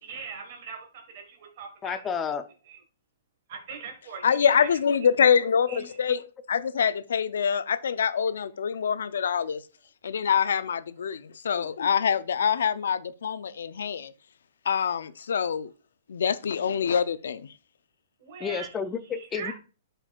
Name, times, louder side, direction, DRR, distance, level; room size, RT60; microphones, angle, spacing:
voice 1, 0.0-2.0 2.7-2.8 3.5-4.7 5.7-6.0 18.2-18.7 19.1-19.5, right 6 dB, 45° right, 1.6 m, -41 dB
voice 2, 1.8-2.4 18.4-19.5, left 6 dB, 15° left, 0.4 m, -31 dB
voice 3, 4.2-6.2 6.5-9.6 10.0-14.1 14.7-15.7 16.1-17.5, left 7 dB, 85° left, 0.5 m, -25 dB
11.0 x 4.5 x 2.4 m
hypercardioid pair, 155°, 0 cm